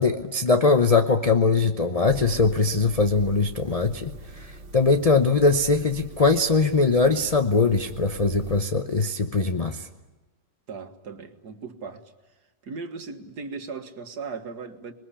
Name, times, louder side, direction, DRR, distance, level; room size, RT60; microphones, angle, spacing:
voice 1, 0.0-9.9, left 3 dB, 40° left, 7 dB, 0.5 m, -21 dB
sound 1, 2.1-8.6, right 2 dB, 85° right, 2.3 m, -42 dB
voice 2, 10.7-12.1 12.6-14.9, right 4 dB, 60° right, 7 dB, 2.1 m, -37 dB
26.0 x 21.0 x 10.0 m, 1.2 s
omnidirectional pair, 2.0 m